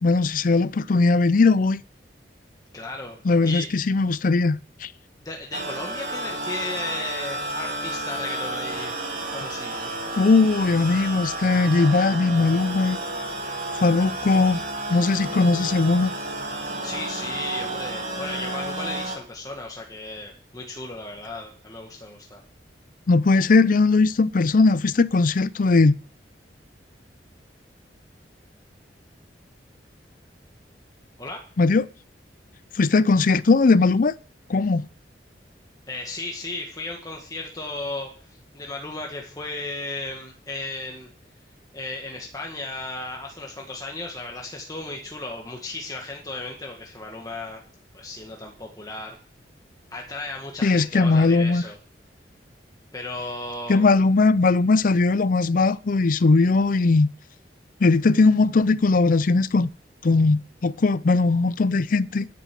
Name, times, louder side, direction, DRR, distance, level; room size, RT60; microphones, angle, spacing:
voice 1, 0.0-1.8 3.2-4.9 10.2-13.0 13.8-14.6 14.9-16.1 23.1-25.9 31.6-31.8 32.7-34.2 34.5-34.9 50.6-51.6 53.7-57.1 57.8-59.7 60.0-62.3, left 3 dB, 50° left, 0.5 m, -19 dB
voice 2, 2.7-3.7 5.2-9.0 9.3-9.9 16.8-22.4 31.2-31.4 35.9-41.1 41.7-47.6 47.9-49.2 49.9-51.8 52.9-53.9, left 2 dB, 20° left, 1.8 m, -35 dB
sound 1, 5.5-19.2, right 2 dB, 55° right, 5.0 m, -31 dB
10.5 x 8.1 x 7.7 m
head